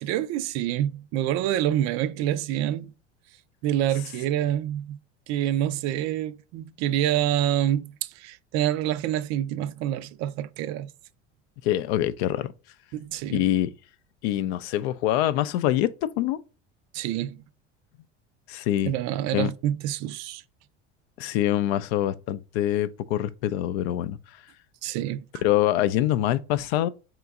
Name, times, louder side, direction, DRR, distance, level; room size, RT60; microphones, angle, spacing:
voice 1, 0.0-2.9 3.6-5.0 5.3-10.9 12.9-13.4 16.9-17.4 18.8-20.4 24.8-25.2, right 12 dB, 50° right, 0.4 m, -27 dB
voice 2, 11.6-12.5 13.3-13.7 14.2-16.4 18.5-18.9 19.3-19.5 21.2-24.2 25.4-26.9, left 13 dB, 65° left, 0.5 m, -25 dB
3.7 x 3.0 x 3.4 m
hypercardioid pair, 80°, 35 cm